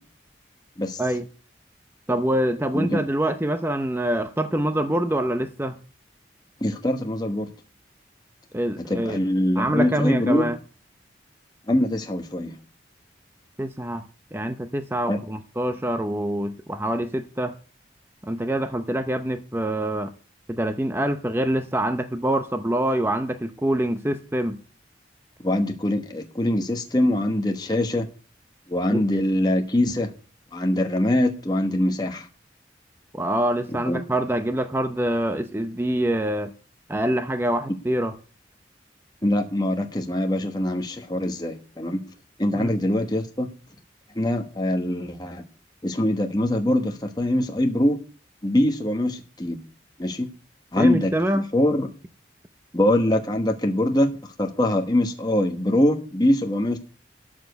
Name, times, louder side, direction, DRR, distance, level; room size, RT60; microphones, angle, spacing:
voice 1, 2.1-5.8 8.5-9.2 9.6-10.6 13.6-14.0 14.3-17.6 18.2-20.1 20.5-24.6 28.9-29.1 33.1-36.5 36.9-38.2 42.5-42.8 50.8-51.4, right 1 dB, 10° right, 0.6 m, -25 dB
voice 2, 6.6-7.5 8.9-10.5 11.7-12.5 15.1-15.2 25.4-28.1 28.7-30.1 30.5-32.2 33.9-34.0 39.2-42.1 42.4-43.5 44.2-45.4 45.8-48.0 48.4-49.6 50.0-50.3 50.7-51.1 51.5-51.9 52.7-54.1 54.4-56.8, left 1 dB, 20° left, 1.2 m, -23 dB
13.0 x 5.1 x 7.9 m
head